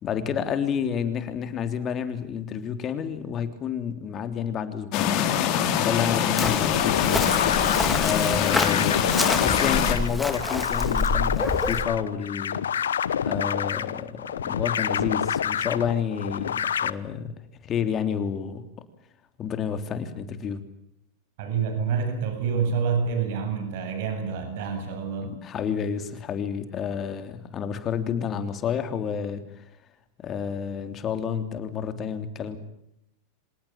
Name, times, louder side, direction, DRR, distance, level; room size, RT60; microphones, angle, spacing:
voice 1, 0.0-5.2 5.8-7.4 8.0-12.9 13.2-17.3 17.6-18.6 19.4-20.6 25.2-29.6 30.2-32.6, left 7 dB, 35° left, 9 dB, 3.4 m, -30 dB
sound 1, 4.9-9.9, left 9 dB, 50° left, 4.5 m, -24 dB
Chirp tweet, 6.4-11.8, left 2 dB, 10° left, 3.6 m, -28 dB
sound 2, 6.7-16.9, left 8 dB, 90° left, 1.0 m, -28 dB
voice 2, 21.4-25.3, right 6 dB, 65° right, 7 dB, 7.6 m, -27 dB
26.5 x 18.5 x 8.9 m, 0.79 s
hypercardioid pair, 110°, 0 cm